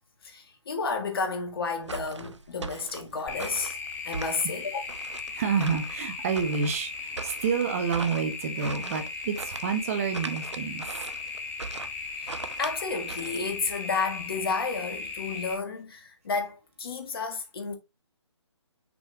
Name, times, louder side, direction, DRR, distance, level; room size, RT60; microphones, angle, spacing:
voice 1, 0.2-3.8 4.1-4.8 12.2-17.7, left 4 dB, 50° left, 1.8 m, -31 dB
sound 1, 1.8-13.8, right 4 dB, 75° right, 0.9 m, -41 dB
sound 2, 3.3-15.5, left 4 dB, 10° left, 1.4 m, -37 dB
voice 2, 5.3-10.8, right 6 dB, 30° right, 1.0 m, -29 dB
6.2 x 5.4 x 2.9 m
figure-of-eight pair, 150°, 15 cm